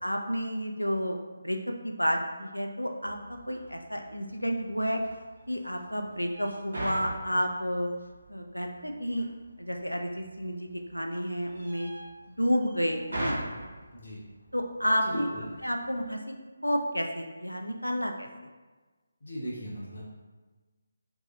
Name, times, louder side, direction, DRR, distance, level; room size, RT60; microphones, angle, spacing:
voice 1, 0.0-5.0 5.5-7.9 8.3-9.3 9.6-11.9 12.4-13.4 14.5-15.3 15.6-16.2 16.6-18.3, equal, 85° left, 3 dB, 0.4 m, -30 dB
sound 1, 3.0-16.2, right 1 dB, 65° right, 0.9 m, -43 dB
voice 2, 15.0-15.4 19.2-20.0, equal, 50° left, -6 dB, 0.8 m, -37 dB
3.0 x 2.6 x 2.4 m, 1.3 s
figure-of-eight pair, 150°, 0 cm